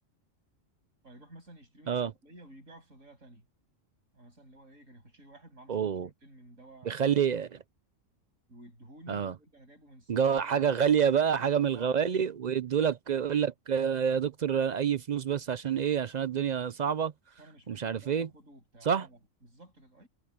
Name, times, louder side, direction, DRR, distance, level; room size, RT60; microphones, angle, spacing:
voice 1, 1.0-3.5 4.1-7.0 8.5-10.6 11.7-12.1 17.4-20.1, right 1 dB, 85° right, 8.5 m, -53 dB
voice 2, 5.7-6.1 6.9-7.6 9.1-9.3 10.1-17.1 17.7-18.3 18.9-19.1, right 8 dB, 55° right, 0.5 m, -27 dB
omnidirectional pair, 1.3 m